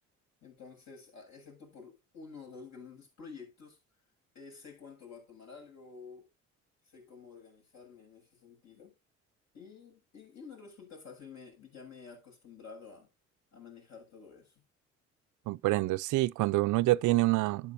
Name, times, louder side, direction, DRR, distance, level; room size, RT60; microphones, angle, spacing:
voice 1, 0.4-3.8 4.3-6.3 6.9-8.9 9.5-13.1 13.5-14.5, left 5 dB, 65° left, 7.2 m, -50 dB
voice 2, 15.5-17.7, right 18 dB, 80° right, 0.5 m, -27 dB
12.0 x 9.2 x 2.6 m
cardioid pair, 90°, 30 cm